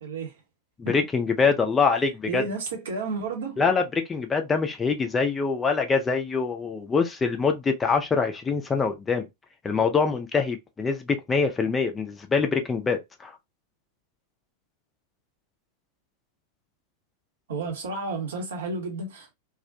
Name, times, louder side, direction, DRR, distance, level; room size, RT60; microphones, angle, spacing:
voice 1, 0.0-0.4 2.3-3.6 17.5-19.3, right 3 dB, 60° right, 0.8 m, -31 dB
voice 2, 0.8-2.4 3.6-3.8 4.1-9.3 9.6-13.3, left 5 dB, 15° left, 0.4 m, -24 dB
2.4 x 2.1 x 2.5 m
figure-of-eight pair, 90°, 0 cm